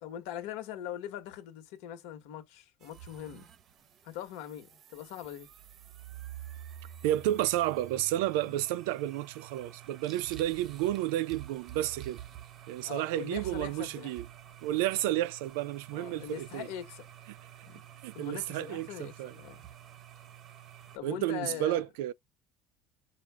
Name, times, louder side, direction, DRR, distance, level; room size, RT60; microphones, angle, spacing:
voice 1, 0.0-3.5 4.0-5.5 8.4-8.6 12.8-14.1 15.9-17.1 17.6-17.8 18.1-19.6 20.9-21.8, left 10 dB, 75° left, 1.2 m, -42 dB
sound 1, 2.8-21.0, right 11 dB, 35° right, 0.6 m, -49 dB
voice 2, 7.0-12.2 12.7-14.3 14.6-16.7 18.0-19.3 21.0-22.1, right 14 dB, 90° right, 0.4 m, -31 dB
5.1 x 2.4 x 3.4 m
cardioid pair, 160°, 0 cm